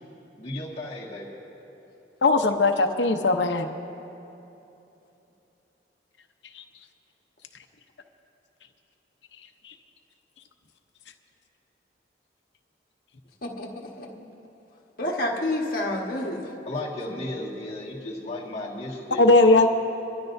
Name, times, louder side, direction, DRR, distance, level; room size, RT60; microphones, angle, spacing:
voice 1, 0.4-1.3 16.6-19.5, left 2 dB, 35° left, -5 dB, 1.7 m, -34 dB
voice 2, 2.2-3.7 6.5-6.6 9.6-9.7 19.2-19.7, left 2 dB, 80° left, 6 dB, 0.8 m, -19 dB
voice 3, 13.4-14.1 15.0-16.4, left 1 dB, 55° left, -2 dB, 1.5 m, -29 dB
25.5 x 12.5 x 2.6 m, 2.9 s
head